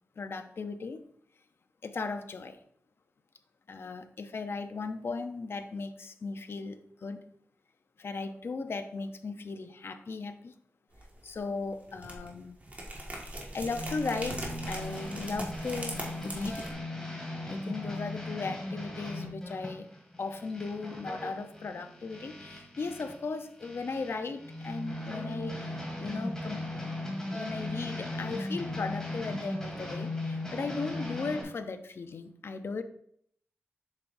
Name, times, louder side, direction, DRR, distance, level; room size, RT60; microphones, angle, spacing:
voice 1, 0.2-1.0 1.8-2.6 3.7-7.2 8.0-10.5 11.2-12.6 13.5-16.7 17.5-19.9 20.2-25.7 26.0-26.6 27.3-32.8, left 4 dB, 60° left, 8 dB, 0.6 m, -37 dB
sound 1, 10.9-11.4 11.7-16.7, right 1 dB, 35° right, 1.7 m, -40 dB
sound 2, 13.7-23.2 23.6-31.4, left 1 dB, 10° left, 2.2 m, -38 dB
7.3 x 6.1 x 2.6 m, 0.66 s
wide cardioid pair, 100°, 5 cm